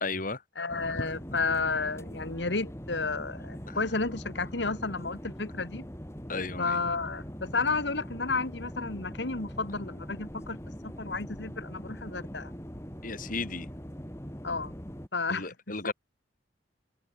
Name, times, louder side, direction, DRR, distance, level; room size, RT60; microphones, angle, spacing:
voice 1, 0.0-0.4 3.7-3.8 6.3-6.8 13.0-13.7 15.3-15.9, left 3 dB, 50° left, 3.2 m, -34 dB
voice 2, 0.6-5.9 6.6-10.6 10.8-12.5 14.4-14.7 15.1-15.5 15.8-15.9, left 3 dB, 75° left, 2.2 m, -32 dB
sound 1, 0.7-15.1, equal, 15° left, 6.2 m, -42 dB
open air
head